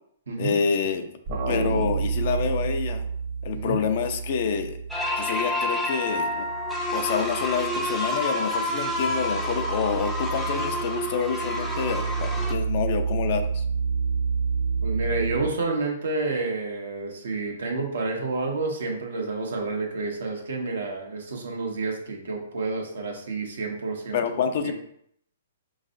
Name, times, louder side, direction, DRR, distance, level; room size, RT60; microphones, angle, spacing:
voice 1, 0.4-1.1 1.5-3.1 3.4-4.8 5.2-6.5 6.9-13.6 24.1-24.7, left 6 dB, 50° left, 7 dB, 0.5 m, -27 dB
sound 1, 1.3-5.6 5.9-15.5, right 5 dB, 50° right, 1.1 m, -30 dB
sound 2, 4.9-12.5, left 1 dB, ahead, 0.6 m, -29 dB
voice 2, 14.8-24.2 24.6-24.7, right 3 dB, 80° right, 0 dB, 1.1 m, -29 dB
5.4 x 3.1 x 2.6 m, 0.69 s
hypercardioid pair, 140°, 0 cm